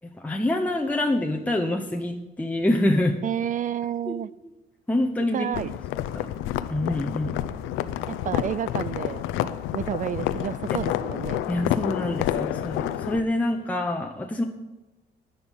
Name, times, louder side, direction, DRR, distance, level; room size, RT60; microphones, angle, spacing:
voice 1, 0.2-3.2 4.1-4.2 4.9-5.8 6.1-6.3 6.7-7.4 10.7-10.8 11.5-14.4, left 1 dB, 5° left, 3 dB, 0.9 m, -26 dB
voice 2, 3.2-4.3 5.3-5.7 8.1-9.2 9.7-11.4, right 9 dB, 40° right, 19 dB, 0.4 m, -30 dB
sound 1, 5.5-13.2, left 12 dB, 80° left, 0.6 m, -29 dB
10.5 x 9.9 x 5.4 m, 1.1 s
cardioid pair, 85°, 20 cm